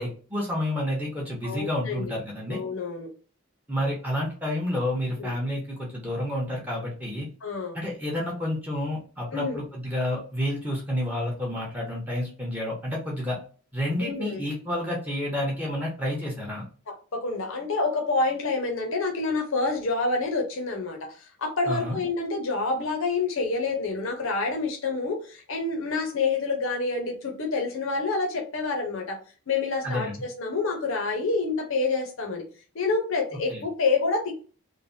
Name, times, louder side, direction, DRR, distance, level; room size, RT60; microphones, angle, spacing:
voice 1, 0.0-2.6 3.7-7.3 7.7-13.4 13.7-16.6 21.7-22.0 29.8-30.1 33.5-33.6, left 1 dB, 10° right, -2 dB, 0.8 m, -29 dB
voice 2, 1.4-2.2 2.5-3.1 5.2-5.3 7.4-7.8 9.3-9.6 14.0-14.4 16.9-21.1 21.4-29.2 29.5-32.4 32.7-34.3, left 3 dB, 65° left, 3 dB, 0.6 m, -28 dB
3.2 x 2.1 x 2.6 m, 0.39 s
head